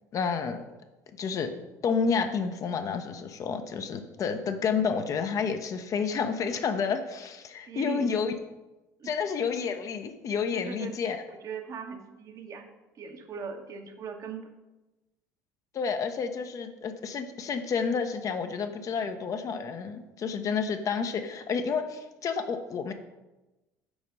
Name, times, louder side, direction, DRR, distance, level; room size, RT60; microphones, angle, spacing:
voice 1, 0.1-0.6 1.2-1.5 1.8-8.3 9.0-11.2 15.7-22.9, left 5 dB, 40° left, 8 dB, 0.6 m, -30 dB
voice 2, 7.7-8.1 9.0-9.1 10.5-12.7 12.9-14.5, right 5 dB, 40° right, 5 dB, 0.9 m, -39 dB
5.0 x 4.8 x 5.2 m, 1.0 s
figure-of-eight pair, 60°, 9 cm